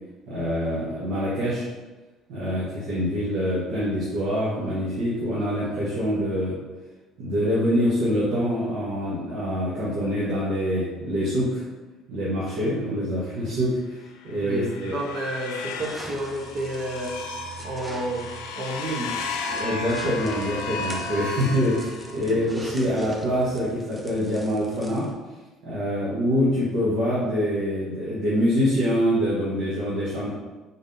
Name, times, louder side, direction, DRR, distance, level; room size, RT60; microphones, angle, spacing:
voice 1, 0.3-1.7 2.3-6.6 7.2-11.6 12.1-14.9 19.5-25.1 25.6-30.3, equal, 70° right, -9 dB, 1.1 m, -25 dB
sound 1, 14.2-22.5, left 3 dB, 80° left, 0.4 m, -34 dB
voice 2, 14.4-17.2 17.6-18.3 18.5-19.2 19.5-19.6 22.3-22.4, right 1 dB, 45° right, 0 dB, 1.0 m, -30 dB
sound 2, 15.8-25.1, right 1 dB, 10° right, 0.7 m, -43 dB
4.1 x 3.4 x 2.7 m, 1.2 s
supercardioid pair, 75°, 0 cm